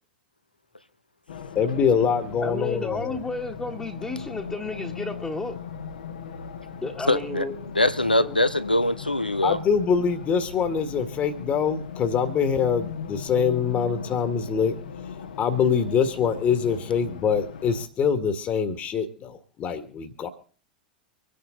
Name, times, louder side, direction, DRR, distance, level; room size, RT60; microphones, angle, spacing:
Race car auto racing, 1.3-17.9, left 6 dB, 70° left, 1.6 m, -38 dB
voice 1, 1.6-3.2 9.4-14.7 15.4-20.3, left 6 dB, 30° left, 1.9 m, -24 dB
voice 2, 2.4-5.6 6.8-7.6 8.2-8.4, left 2 dB, 10° left, 1.7 m, -32 dB
voice 3, 7.1-7.4 7.7-9.6, left 1 dB, 90° left, 0.8 m, -22 dB
25.0 x 10.0 x 3.9 m
figure-of-eight pair, 90°, 5 cm